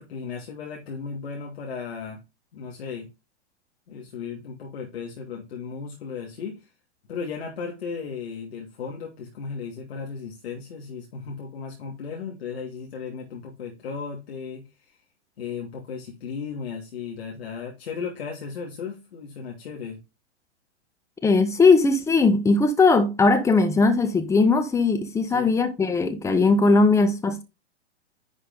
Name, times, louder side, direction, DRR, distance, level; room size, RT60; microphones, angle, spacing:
voice 1, 0.0-2.2 2.5-3.1 3.9-6.7 7.1-15.0 15.4-20.0 25.3-25.6, left 5 dB, 65° left, 2.7 m, -35 dB
voice 2, 21.2-27.4, left 3 dB, 10° left, 1.1 m, -19 dB
10.5 x 5.0 x 3.9 m
figure-of-eight pair, 110°, 34 cm